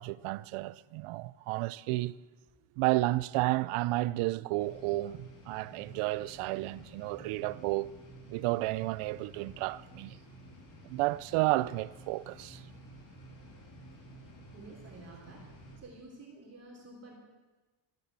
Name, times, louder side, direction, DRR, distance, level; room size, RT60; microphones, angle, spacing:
voice 1, 0.0-2.2 2.8-7.9 8.3-10.2 10.8-12.6, right 19 dB, 80° right, 0.7 m, -32 dB
sound 1, 4.6-15.8, right 1 dB, 40° left, 3.5 m, -52 dB
voice 2, 14.5-15.4 15.8-17.2, right 2 dB, 30° right, 3.2 m, -50 dB
13.5 x 11.5 x 8.2 m
cardioid pair, 165°, 50 cm